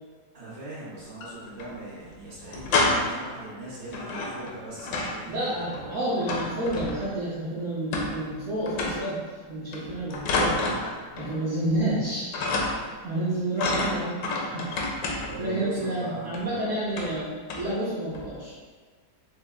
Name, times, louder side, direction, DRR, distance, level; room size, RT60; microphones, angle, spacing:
voice 1, 0.3-6.3 11.6-11.8 13.4-13.6 15.0-16.6, right 2 dB, 80° right, -10 dB, 2.1 m, -40 dB
sound 1, 1.0-1.7 2.0-2.1 2.4-3.3 3.9-5.2 5.5-7.2 7.9-8.4 8.7-9.1 9.7-11.4 11.7-12.0 12.3-13.0 13.6-15.5 16.3-16.5 16.9-17.2 17.5-17.8 18.1-18.4, left 2 dB, 85° left, 1.3 m, -29 dB
voice 2, 5.3-10.6 11.2-12.3 13.0-14.7 15.4-18.5, right 1 dB, 60° right, -8 dB, 0.9 m, -30 dB
6.2 x 2.2 x 2.2 m, 1.5 s
omnidirectional pair, 1.9 m